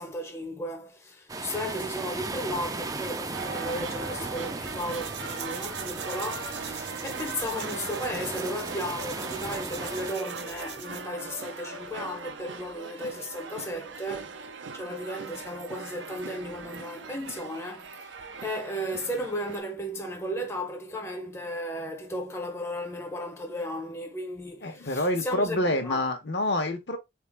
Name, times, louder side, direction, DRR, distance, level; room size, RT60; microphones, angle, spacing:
voice 1, 0.0-14.5 14.7-26.0, equal, 15° left, 0.6 m, -35 dB
sound 1, 1.3-10.2, right 3 dB, 20° right, 0.4 m, -37 dB
sound 2, 3.3-19.6, right 4 dB, 90° right, 0.7 m, -40 dB
sound 3, 4.6-11.1, right 8 dB, 65° right, 0.9 m, -43 dB
voice 2, 24.6-27.0, left 1 dB, 65° left, 1.0 m, -27 dB
3.7 x 3.6 x 3.4 m
head